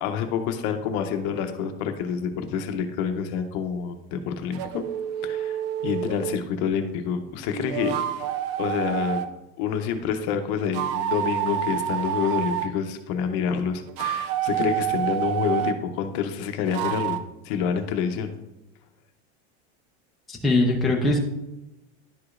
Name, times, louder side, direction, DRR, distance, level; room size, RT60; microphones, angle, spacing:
voice 1, 0.0-4.8 5.2-7.9 8.6-9.2 9.6-17.2 17.4-18.3, left 7 dB, 50° left, 7 dB, 0.7 m, -27 dB
sound 1, 4.5-6.4 7.5-9.3 10.6-12.7 13.8-15.8 16.7-17.2, right 11 dB, 50° right, 0.5 m, -28 dB
voice 2, 20.3-21.2, left 2 dB, ahead, -3 dB, 0.5 m, -21 dB
11.0 x 4.9 x 2.4 m, 0.96 s
supercardioid pair, 165°, 33 cm